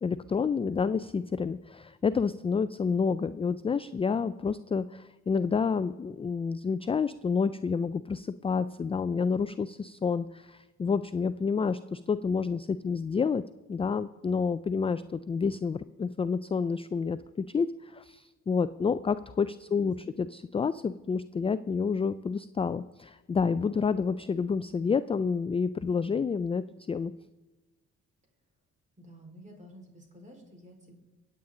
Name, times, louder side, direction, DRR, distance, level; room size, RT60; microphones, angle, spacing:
voice 1, 0.0-13.4 13.7-27.1, left 5 dB, 20° left, 14 dB, 0.3 m, -29 dB
voice 2, 19.7-20.1 29.0-31.0, equal, 25° right, 2 dB, 4.5 m, -51 dB
23.5 x 8.8 x 3.8 m, 1.2 s
cardioid pair, 90°, 30 cm